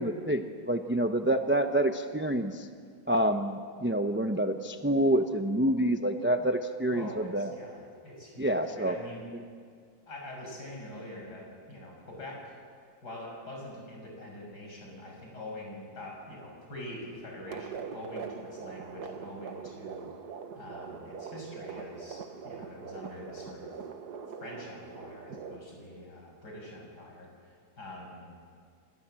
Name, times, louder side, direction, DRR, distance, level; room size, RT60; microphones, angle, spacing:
voice 1, 0.0-2.7 3.1-7.5 8.4-9.0, right 1 dB, 10° right, 6 dB, 0.7 m, -27 dB
voice 2, 6.9-9.2 10.1-12.5 13.0-20.1 20.5-23.7 24.4-27.3 27.8-28.3, left 1 dB, 85° left, -1 dB, 6.9 m, -44 dB
sound 1, 17.5-25.6, right 6 dB, 75° right, 1.9 m, -42 dB
28.0 x 25.5 x 7.7 m, 2.2 s
omnidirectional pair, 1.7 m